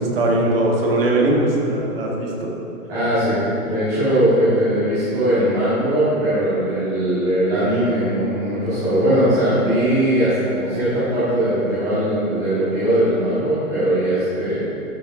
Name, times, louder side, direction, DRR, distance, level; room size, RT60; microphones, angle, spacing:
voice 1, 0.1-2.5, right 1 dB, 40° right, -2 dB, 1.6 m, -20 dB
voice 2, 2.9-14.7, right 1 dB, 15° right, -15 dB, 1.9 m, -20 dB
13.0 x 6.8 x 3.7 m, 2.9 s
hypercardioid pair, 180°, 44 cm